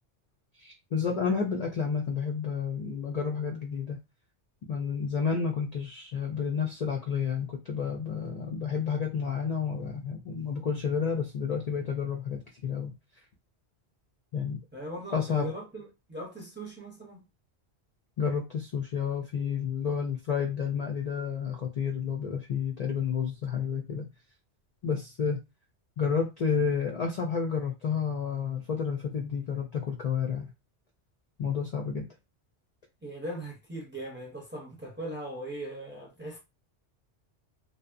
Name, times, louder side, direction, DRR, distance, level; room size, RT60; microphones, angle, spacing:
voice 1, 0.6-4.0 4.7-12.9 14.3-14.6 15.1-15.5 18.2-24.1 24.8-25.4 26.0-30.5 31.4-32.1, left 6 dB, 55° left, 0.4 m, -30 dB
voice 2, 14.7-17.2 33.0-36.4, right 1 dB, 10° right, 0.6 m, -39 dB
2.7 x 2.1 x 2.5 m
omnidirectional pair, 1.2 m